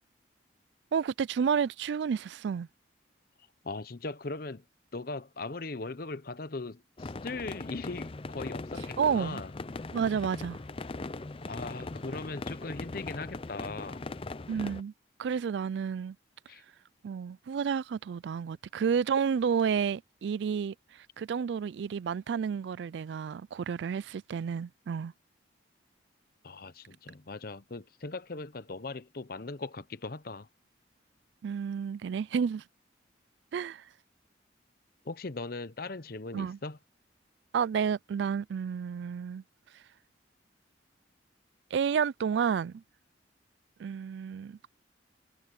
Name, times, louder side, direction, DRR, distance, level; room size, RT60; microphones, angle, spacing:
voice 1, 0.9-2.7 9.0-9.4 9.9-10.6 14.5-14.9 15.2-16.2 17.0-20.7 21.2-25.1 31.4-32.6 33.5-33.8 36.3-36.6 37.5-39.4 41.7-42.8 43.8-44.7, right 7 dB, 70° right, 0.3 m, -30 dB
voice 2, 3.6-4.6 4.9-9.5 11.5-14.0 16.5-16.6 26.4-30.5 35.0-36.8, left 3 dB, 50° left, 0.9 m, -39 dB
sound 1, 7.0-14.8, left 3 dB, 30° left, 0.5 m, -40 dB
head